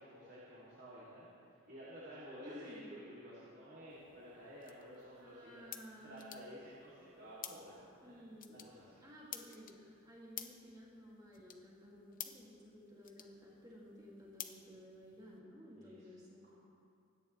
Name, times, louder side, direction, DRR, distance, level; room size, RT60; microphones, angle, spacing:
voice 1, 0.0-5.6 6.0-9.0 15.8-16.1 16.4-16.5, equal, 55° right, -9 dB, 3.3 m, -53 dB
voice 2, 2.4-2.9 5.1-6.3 8.0-8.7 9.0-16.5, equal, 20° right, -5 dB, 2.7 m, -55 dB
sound 1, 3.9-15.4, left 10 dB, 40° left, 0.8 m, -53 dB
25.0 x 10.0 x 3.4 m, 2.4 s
head